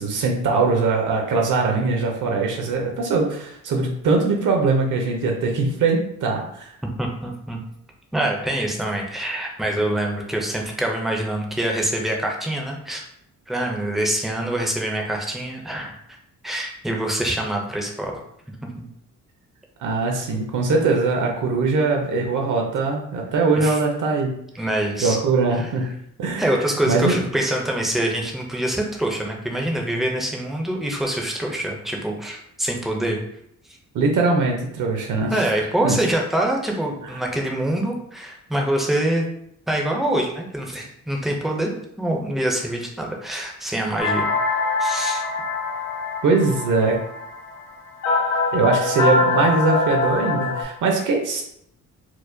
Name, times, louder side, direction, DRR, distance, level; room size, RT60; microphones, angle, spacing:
voice 1, 0.0-6.7 19.8-24.3 25.0-25.9 26.2-26.6 26.9-27.1 33.9-35.3 35.8-35.9 46.2-47.0 48.5-51.4, right 3 dB, 70° right, 1 dB, 0.6 m, -21 dB
voice 2, 7.0-7.6 8.1-13.0 13.5-16.0 16.4-18.2 18.8-18.9 23.5-23.8 24.6-25.2 25.6-25.7 26.4-33.2 35.3-39.2 39.7-41.7 42.0-44.3 44.8-45.2, right 1 dB, ahead, 0 dB, 0.4 m, -25 dB
sound 1, 44.0-50.6, left 3 dB, 70° left, 1.4 m, -23 dB
4.6 x 2.1 x 2.5 m, 0.72 s
wide cardioid pair, 175°, 32 cm